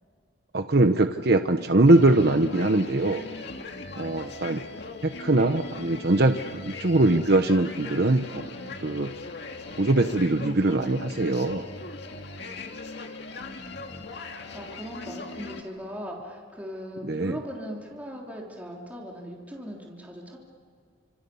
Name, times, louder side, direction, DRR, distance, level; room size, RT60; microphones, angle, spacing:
voice 1, 0.5-3.2 4.0-4.6 5.0-9.1 9.8-11.7 17.0-17.4, right 2 dB, 55° right, 7 dB, 1.0 m, -22 dB
sound 1, 1.9-15.6, left 3 dB, 60° left, 2.3 m, -39 dB
voice 2, 14.5-20.4, equal, 10° right, -2 dB, 3.5 m, -39 dB
30.0 x 27.0 x 7.1 m, 2.2 s
head